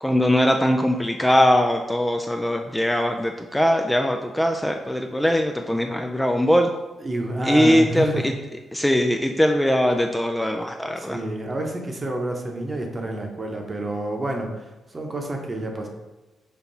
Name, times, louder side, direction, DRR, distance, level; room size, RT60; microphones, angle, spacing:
voice 1, 0.0-6.7 7.4-8.3 8.7-11.2, equal, 10° left, 4 dB, 0.3 m, -21 dB
voice 2, 7.0-8.2 11.0-14.5 14.9-15.9, right 1 dB, 30° right, 2 dB, 0.9 m, -28 dB
5.4 x 2.3 x 4.1 m, 1.1 s
cardioid pair, 65°, 0 cm